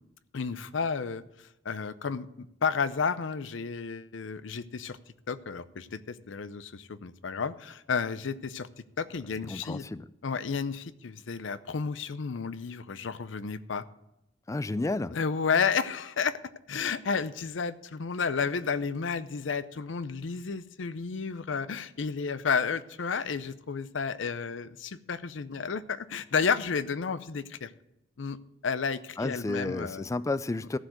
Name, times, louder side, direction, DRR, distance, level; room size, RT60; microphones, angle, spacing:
voice 1, 0.3-1.2 1.6-5.0 5.3-8.7 9.0-9.8 10.2-13.8 15.1-16.4 16.7-27.7 28.2-28.4 28.6-30.1, left 5 dB, 75° left, 0.6 m, -31 dB
voice 2, 9.5-10.0 14.5-15.1 29.2-30.8, left 2 dB, 15° left, 0.3 m, -31 dB
14.0 x 5.0 x 7.7 m
head